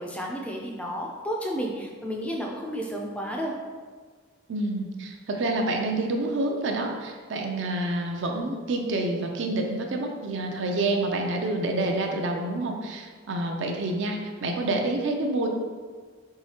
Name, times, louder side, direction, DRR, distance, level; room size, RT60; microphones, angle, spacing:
voice 1, 0.0-3.5, equal, 5° left, -1 dB, 0.3 m, -32 dB
voice 2, 4.5-15.5, right 2 dB, 60° right, 3 dB, 0.5 m, -28 dB
4.7 x 3.1 x 2.9 m, 1.5 s
head